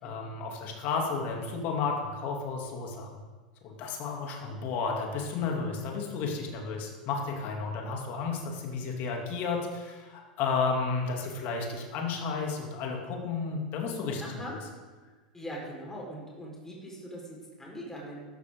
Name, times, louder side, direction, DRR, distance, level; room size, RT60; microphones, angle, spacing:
voice 1, 0.0-3.1 3.6-14.2, left 4 dB, 45° left, 1 dB, 2.9 m, -32 dB
voice 2, 14.2-14.5 15.3-18.3, equal, 10° left, -2 dB, 4.8 m, -41 dB
14.0 x 12.5 x 3.9 m, 1.3 s
figure-of-eight pair, 85°, 4 cm